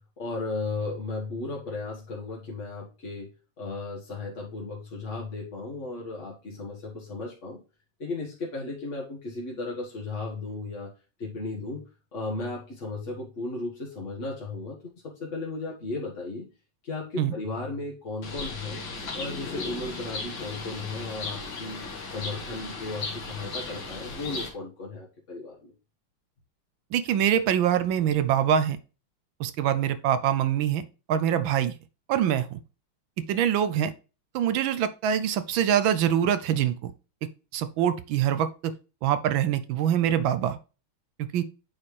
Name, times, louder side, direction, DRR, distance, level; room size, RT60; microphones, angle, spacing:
voice 1, 0.2-3.3 3.6-7.6 8.0-10.9 11.2-11.8 12.1-16.5 16.8-18.8 19.1-25.7, left 3 dB, 35° left, -4 dB, 1.7 m, -35 dB
Bird, 18.2-24.5, left 3 dB, 65° left, 2.3 m, -36 dB
voice 2, 26.9-28.8 29.4-30.8 31.1-31.7 32.1-32.6 33.3-33.9 34.3-36.9 37.5-38.7 39.0-40.6 41.2-41.4, right 9 dB, 75° right, 13 dB, 1.3 m, -24 dB
8.5 x 4.3 x 3.2 m, 0.32 s
omnidirectional pair, 2.4 m